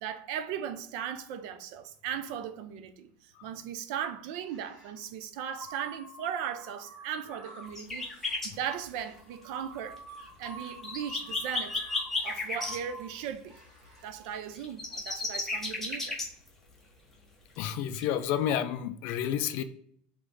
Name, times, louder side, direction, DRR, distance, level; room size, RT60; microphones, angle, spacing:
voice 1, 0.0-10.0 10.4-11.8 12.2-13.5 14.0-16.2, right 9 dB, 50° right, 0.4 m, -37 dB
sound 1, 4.4-5.0 5.5-14.1, right 1 dB, 25° right, 1.4 m, -49 dB
sound 2, 7.7-8.5 10.0-10.1 10.2-12.8 14.5-16.5 17.9-18.0 18.5-18.6, left 3 dB, 5° left, 0.7 m, -33 dB
voice 2, 17.6-19.6, left 10 dB, 45° left, 0.3 m, -30 dB
3.9 x 3.0 x 3.2 m
cardioid pair, 180°, 4 cm